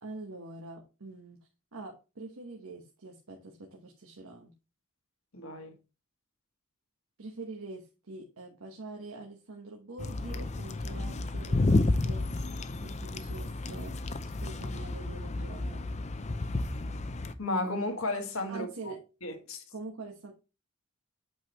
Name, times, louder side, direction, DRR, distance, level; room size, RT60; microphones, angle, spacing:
voice 1, 0.0-4.5 7.2-12.5 12.8-13.9 14.2-15.9 18.5-19.0 19.7-20.3, right 3 dB, 75° right, 1.2 m, -45 dB
voice 2, 5.3-5.7 17.4-18.9 19.2-19.6, left 2 dB, 65° left, 1.5 m, -33 dB
sound 1, 10.0-17.3, left 2 dB, 30° left, 0.6 m, -31 dB
8.4 x 4.9 x 3.0 m
head